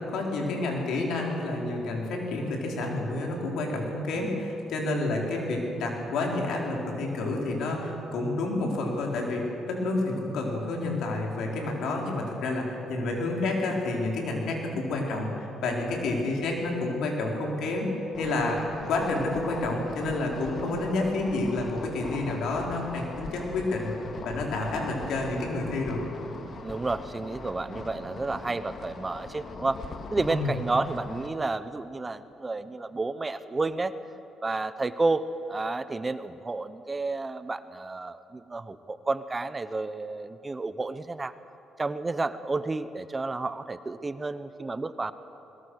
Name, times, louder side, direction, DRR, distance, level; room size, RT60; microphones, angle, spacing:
voice 1, 0.1-17.9 18.2-18.6 18.8-23.9 24.2-26.0 30.2-30.6, left 2 dB, 80° left, 0 dB, 4.5 m, -29 dB
sound 1, 18.1-31.3, left 4 dB, 50° left, 2.0 m, -41 dB
voice 2, 26.6-29.8 30.1-33.9 34.4-41.3 41.8-45.1, right 3 dB, 25° right, 13 dB, 0.8 m, -31 dB
21.5 x 21.0 x 6.5 m, 3.0 s
cardioid pair, 90°, 0 cm